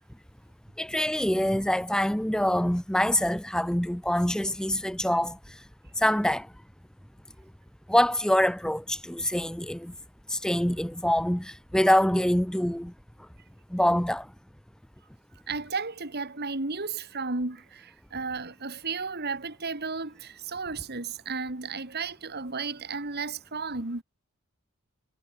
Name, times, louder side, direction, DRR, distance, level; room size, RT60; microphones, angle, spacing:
voice 1, 0.8-5.4 6.0-6.5 7.9-9.9 10.3-12.9 13.7-14.3, left 1 dB, 5° left, 0.8 m, -25 dB
voice 2, 15.5-24.0, right 4 dB, 50° right, 2.4 m, -33 dB
head